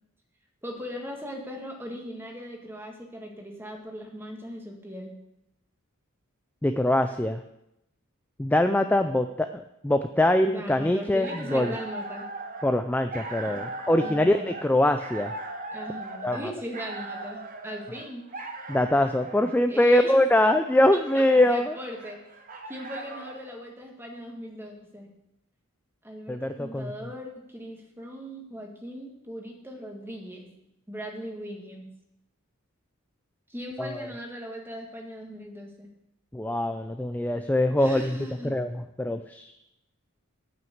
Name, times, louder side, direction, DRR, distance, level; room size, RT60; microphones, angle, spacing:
voice 1, 0.6-5.1 10.5-12.2 13.4-13.6 14.0-14.5 15.7-18.2 19.7-20.2 20.9-22.2 22.7-25.1 26.0-30.5 30.9-31.9 33.5-35.9 37.8-38.6, equal, 10° right, 1 dB, 1.7 m, -39 dB
voice 2, 6.6-7.4 8.4-11.7 12.6-15.3 16.2-16.4 18.7-21.7 26.3-26.9 33.8-34.1 36.3-38.2 38.4-39.5, left 1 dB, 10° left, 8 dB, 0.3 m, -23 dB
sound 1, 11.0-23.4, right 2 dB, 40° right, 1.1 m, -39 dB
9.2 x 6.0 x 8.0 m, 0.86 s
head